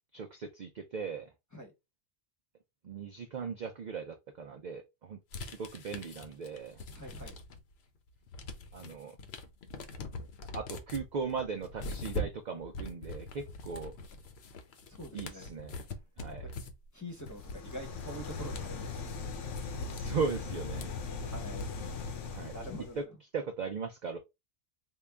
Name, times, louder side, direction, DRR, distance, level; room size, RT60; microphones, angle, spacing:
voice 1, 0.1-1.3 2.8-6.8 8.7-9.2 10.5-13.9 15.1-15.8 16.2-16.5 19.9-20.9 22.3-22.5 23.3-24.2, right 5 dB, 60° right, 0.5 m, -38 dB
sound 1, 5.3-7.7 8.1-22.0, left 2 dB, 65° left, 0.9 m, -43 dB
voice 2, 6.9-7.4 14.9-15.5 16.4-16.5 16.9-19.3 21.2-21.6 22.5-23.0, equal, 15° left, 0.9 m, -45 dB
sound 2, 17.3-23.0, left 4 dB, 85° left, 1.1 m, -39 dB
3.7 x 2.3 x 3.4 m
omnidirectional pair, 1.2 m